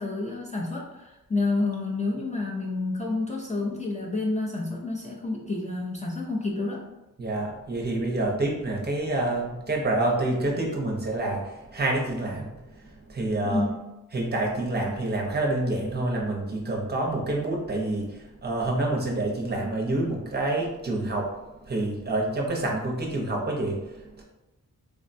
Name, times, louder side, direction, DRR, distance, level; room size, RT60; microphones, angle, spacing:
voice 1, 0.0-6.9 13.4-13.8, left 3 dB, 20° left, -4 dB, 0.5 m, -29 dB
voice 2, 7.2-12.6 12.8-13.6 14.1-21.3 21.6-24.2, right 2 dB, 30° right, -2 dB, 0.6 m, -27 dB
3.5 x 2.1 x 2.5 m, 1.0 s
wide cardioid pair, 100°, 33 cm